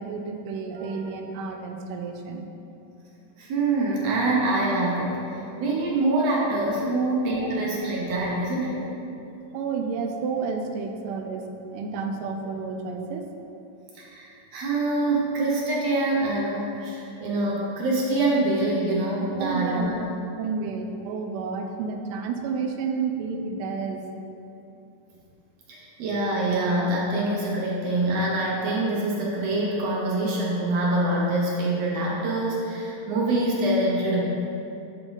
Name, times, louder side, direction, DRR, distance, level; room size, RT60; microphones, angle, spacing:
voice 1, 0.0-2.5 6.9-7.0 7.4-7.5 9.5-11.4 11.7-13.3 19.4-20.1 20.4-24.0, right 5 dB, 90° right, 4 dB, 2.2 m, -30 dB
voice 2, 3.4-8.8 14.0-20.0 25.7-34.2, right 2 dB, 65° right, -4 dB, 1.9 m, -25 dB
11.0 x 3.7 x 4.0 m, 2.8 s
omnidirectional pair, 3.6 m